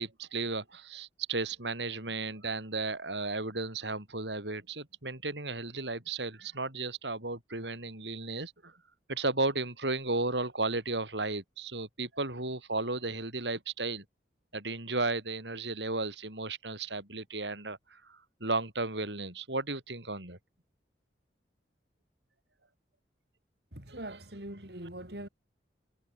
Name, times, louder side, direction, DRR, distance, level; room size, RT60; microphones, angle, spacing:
voice 1, 0.0-8.7 9.1-14.0 14.5-20.4 23.9-24.0, right 3 dB, 80° right, 6.6 m, -34 dB
voice 2, 23.7-25.3, right 1 dB, 65° right, 5.5 m, -42 dB
head